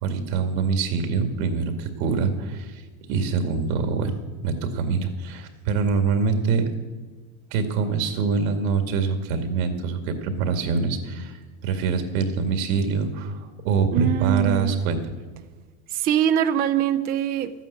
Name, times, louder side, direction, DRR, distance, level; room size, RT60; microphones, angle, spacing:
voice 1, 0.0-2.8 3.1-4.1 4.4-6.7 7.5-15.0, right 5 dB, 75° right, 6 dB, 2.3 m, -24 dB
voice 2, 13.9-14.8 15.9-17.5, right 9 dB, 25° right, 10 dB, 0.4 m, -23 dB
13.0 x 9.1 x 8.2 m, 1.3 s
supercardioid pair, 145°, 42 cm